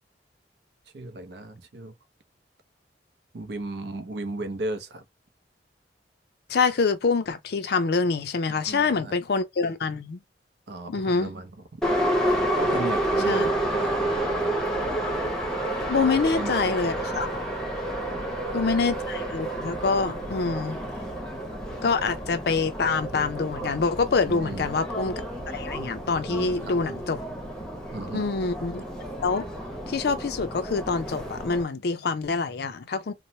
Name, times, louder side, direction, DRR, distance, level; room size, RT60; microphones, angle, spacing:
voice 1, 0.9-1.9 3.3-5.0 8.5-9.2 10.7-11.8 12.5-13.4 13.7-14.6 16.0-16.1 16.4-16.8 18.1-18.6 20.2-20.4 24.3-24.7 26.3-26.8 27.9-28.2, right 2 dB, 65° right, 0.6 m, -36 dB
voice 2, 6.5-10.2 10.9-11.3 13.3-13.5 15.9-17.5 18.5-20.8 21.8-25.1 25.5-27.2 28.1-28.8 29.2-29.5 29.9-33.1, left 4 dB, 60° left, 0.5 m, -26 dB
Subway metro underground, 11.8-31.6, right 1 dB, 5° left, 0.7 m, -30 dB
3.0 x 2.0 x 2.7 m
head